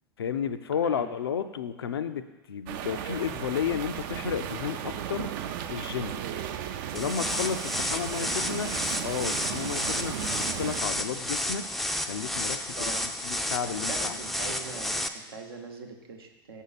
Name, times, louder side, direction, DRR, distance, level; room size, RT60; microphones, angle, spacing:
voice 1, 0.2-5.3 5.7-6.2 6.9-8.7 9.0-11.7 12.0-14.2, left 7 dB, 90° left, 11 dB, 0.4 m, -32 dB
sound 1, 2.7-10.8, right 9 dB, 60° right, 0.5 m, -35 dB
sound 2, 7.0-15.1, left 1 dB, ahead, 0.3 m, -31 dB
voice 2, 8.2-8.8 12.7-13.1 13.7-16.6, right 4 dB, 85° right, 3 dB, 0.9 m, -42 dB
6.3 x 5.5 x 4.1 m, 1.1 s
hypercardioid pair, 95°, 12 cm